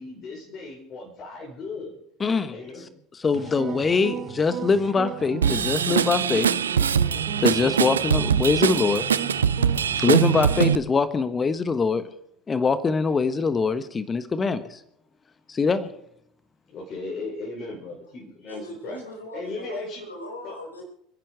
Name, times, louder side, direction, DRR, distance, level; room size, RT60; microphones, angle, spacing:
voice 1, 0.0-1.9 2.5-2.9 16.7-19.0 19.3-20.1 20.4-20.6, left 3 dB, 40° left, -3 dB, 5.1 m, -36 dB
voice 2, 2.2-2.6 3.1-6.5 7.4-9.1 10.0-12.1 12.5-14.8 15.5-15.9, left 4 dB, 25° left, 13 dB, 1.2 m, -23 dB
sound 1, 3.3-10.7, right 8 dB, 50° right, 1.9 m, -35 dB
Drum kit / Drum, 5.4-10.7, right 7 dB, 80° right, 0.5 m, -22 dB
voice 3, 18.5-20.8, equal, 85° left, 1 dB, 4.2 m, -39 dB
28.5 x 10.5 x 4.8 m, 0.72 s
figure-of-eight pair, 70°, 0 cm